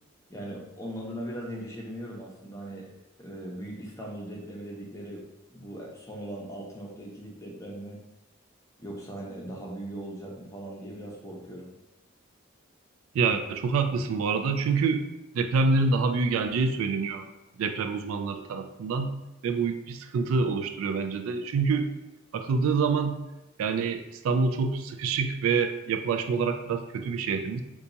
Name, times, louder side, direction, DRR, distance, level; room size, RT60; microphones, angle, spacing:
voice 1, 0.3-2.9 3.2-5.2 5.5-8.0 8.8-11.7, right 1 dB, 15° left, -3 dB, 0.6 m, -39 dB
voice 2, 13.1-15.1 15.3-17.2 17.6-19.1 19.4-21.9 22.3-23.2 23.6-27.6, right 4 dB, 80° right, 8 dB, 0.3 m, -26 dB
2.8 x 2.3 x 3.9 m, 0.93 s
head